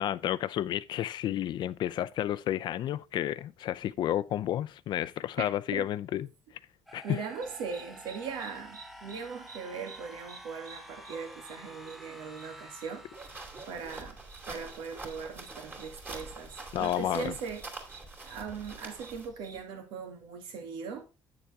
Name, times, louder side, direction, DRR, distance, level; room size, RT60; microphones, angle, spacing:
voice 1, 0.0-6.3 6.9-7.2 16.7-17.3, left 12 dB, 60° left, 0.5 m, -31 dB
sound 1, 6.9-14.8, equal, ahead, 0.8 m, -50 dB
voice 2, 7.0-13.0 13.6-14.2 14.4-17.7 18.2-21.1, right 5 dB, 90° right, 2.2 m, -39 dB
sound 2, 7.4-19.7, right 4 dB, 45° right, 1.5 m, -53 dB
sound 3, 13.1-19.3, right 3 dB, 20° right, 2.6 m, -45 dB
8.8 x 7.0 x 3.5 m
cardioid pair, 135°, 9 cm